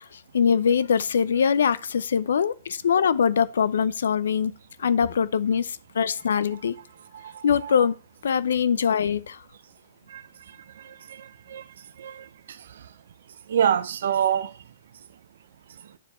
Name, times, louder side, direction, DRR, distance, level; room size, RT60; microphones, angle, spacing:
voice 1, 0.3-4.5 4.8-6.8 7.4-7.9 8.2-9.4, left 7 dB, 80° left, 0.5 m, -22 dB
voice 2, 7.1-7.7 10.1-10.2 10.8-11.6 12.0-12.3 13.5-14.5, right 9 dB, 70° right, 0.6 m, -26 dB
9.3 x 3.5 x 4.3 m
hypercardioid pair, 140°, 0 cm